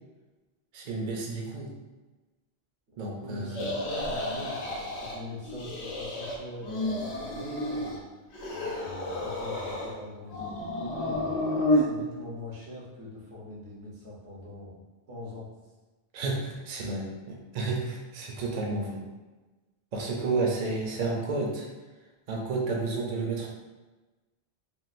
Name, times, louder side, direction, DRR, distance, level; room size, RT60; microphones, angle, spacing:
voice 1, 0.7-1.7 3.0-3.7 16.1-19.0 19.9-21.7 22.3-23.5, right 3 dB, 50° right, -1 dB, 0.6 m, -31 dB
voice 2, 3.1-8.0 8.5-11.3 11.7-14.7 15.1-15.5, left 1 dB, 85° right, -6 dB, 1.3 m, -42 dB
sound 1, 3.5-5.2 5.5-6.3 6.6-8.0 8.3-10.0 10.3-11.8, left 1 dB, 80° left, 1.0 m, -31 dB
3.6 x 2.4 x 2.5 m, 1.2 s
omnidirectional pair, 1.1 m